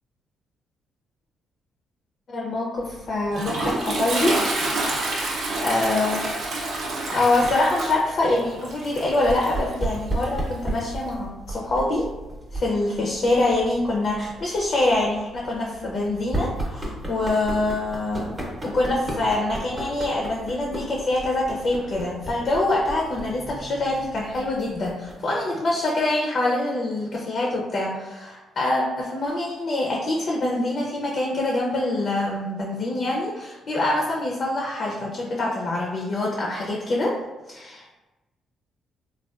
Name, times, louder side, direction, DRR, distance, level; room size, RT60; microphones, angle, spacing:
voice 1, 2.3-4.4 5.6-6.3 7.1-12.1 12.5-37.2 37.5-37.9, left 2 dB, 50° left, -2 dB, 0.5 m, -25 dB
Toilet flush, 2.8-11.1, right 2 dB, 65° right, 0.6 m, -29 dB
sound 1, 9.2-25.4, right 1 dB, 20° right, 0.7 m, -34 dB
3.3 x 2.2 x 2.3 m, 1.1 s
cardioid pair, 90°, 0 cm